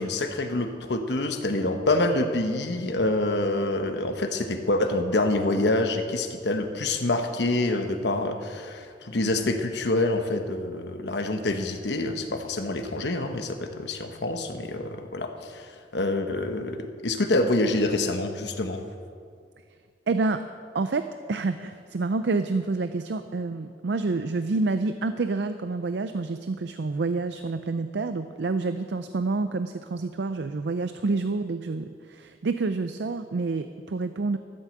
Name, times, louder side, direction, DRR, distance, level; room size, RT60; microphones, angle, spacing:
voice 1, 0.0-18.8, left 2 dB, 80° left, 6 dB, 1.1 m, -26 dB
voice 2, 20.1-20.4 20.7-34.4, right 3 dB, 75° right, 10 dB, 0.5 m, -28 dB
13.5 x 8.3 x 7.8 m, 2.2 s
head